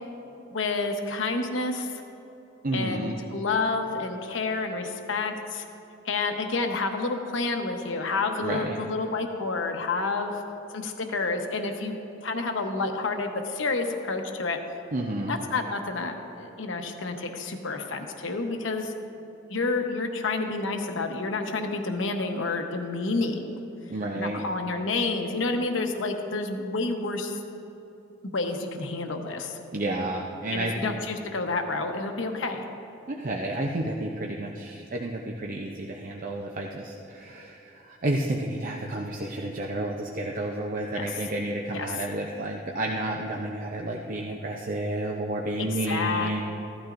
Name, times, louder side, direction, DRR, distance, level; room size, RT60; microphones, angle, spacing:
voice 1, 0.5-2.0 2.7-5.7 6.0-10.4 10.7-14.6 15.3-18.9 19.5-23.6 24.1-27.4 28.3-29.6 30.5-32.6 40.9-41.1 41.7-41.9 45.6-46.4, left 3 dB, 70° left, 4 dB, 1.0 m, -29 dB
voice 2, 2.6-3.2 8.4-8.8 14.9-15.4 23.9-24.4 29.7-31.0 33.1-46.4, right 1 dB, 45° right, 0 dB, 0.6 m, -31 dB
15.0 x 12.0 x 2.6 m, 3.0 s
head